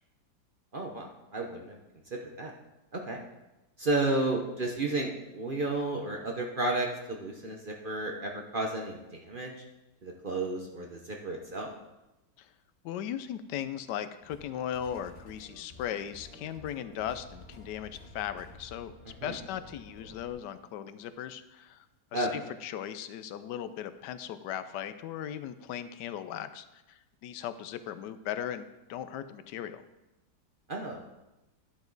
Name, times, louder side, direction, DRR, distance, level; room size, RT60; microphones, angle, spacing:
voice 1, 0.7-1.8 2.1-2.5 2.9-3.2 3.8-9.5 10.0-11.7 19.2-19.4 22.1-22.3 30.7-31.0, right 2 dB, 40° right, 1 dB, 0.8 m, -32 dB
voice 2, 12.8-18.9 19.2-21.8 22.1-29.8, left 10 dB, 85° left, 11 dB, 1.2 m, -38 dB
sound 1, 14.2-20.3, left 2 dB, 45° left, 2.8 m, -51 dB
11.0 x 7.1 x 4.0 m, 0.99 s
omnidirectional pair, 1.8 m